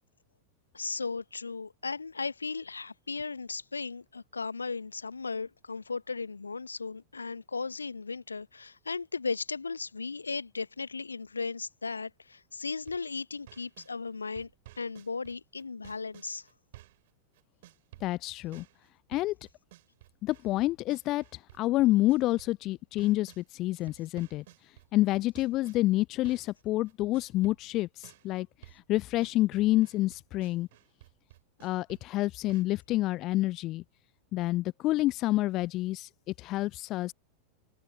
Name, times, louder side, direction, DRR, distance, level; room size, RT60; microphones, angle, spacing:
voice 1, 0.7-14.5 14.8-16.5, left 4 dB, 75° left, 1.2 m, -36 dB
sound 1, 12.7-13.9 14.4-17.1 17.3-23.5 23.9-32.6, right 16 dB, 55° right, 8.0 m, -54 dB
voice 2, 18.0-18.6 19.1-19.3 20.2-24.4 24.9-30.7 31.6-33.8 34.3-36.1 36.4-37.1, left 17 dB, 35° left, 0.6 m, -28 dB
figure-of-eight pair, 90°, 0 cm